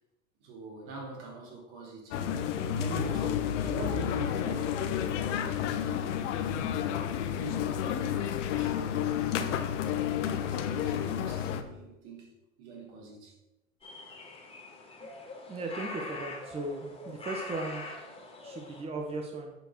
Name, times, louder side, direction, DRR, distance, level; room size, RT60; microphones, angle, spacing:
voice 1, 0.4-2.2 2.5-5.1 5.7-6.3 7.4-9.9 10.2-13.4, right 3 dB, 60° right, 3.2 m, -43 dB
sound 1, 2.1-11.6, left 9 dB, 65° left, 1.0 m, -31 dB
sound 2, 13.8-18.8, left 2 dB, 15° left, 2.3 m, -43 dB
voice 2, 15.5-17.8 18.4-19.5, right 2 dB, 15° right, 1.0 m, -37 dB
8.0 x 4.7 x 6.1 m
hypercardioid pair, 100°, 39 cm